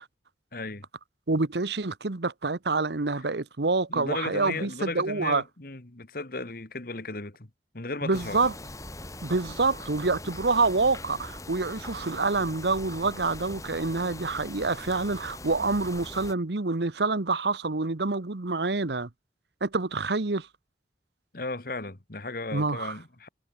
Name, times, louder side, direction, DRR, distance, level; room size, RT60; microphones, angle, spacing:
voice 1, 0.5-0.9 3.9-7.5 7.7-8.4 21.3-23.3, left 3 dB, 55° left, 1.8 m, -35 dB
voice 2, 1.3-5.4 8.0-8.5 9.2-19.1 19.6-20.5 22.5-22.9, right 3 dB, 75° right, 1.1 m, -27 dB
sound 1, 8.1-16.3, left 2 dB, 20° left, 5.0 m, -42 dB
head